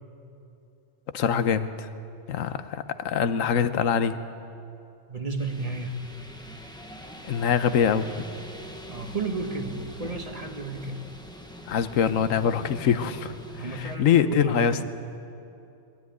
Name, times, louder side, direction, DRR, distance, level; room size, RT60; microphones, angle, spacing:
voice 1, 1.1-1.9 2.3-4.2 7.2-8.1 11.7-13.3 13.8-14.8, left 7 dB, 90° left, 11 dB, 1.2 m, -24 dB
voice 2, 5.1-6.0 8.9-11.0 13.6-14.8, right 3 dB, 30° right, 4 dB, 1.4 m, -32 dB
sound 1, 5.4-14.0, equal, 5° left, 1.2 m, -42 dB
22.0 x 13.0 x 9.4 m, 2.8 s
omnidirectional pair, 1.3 m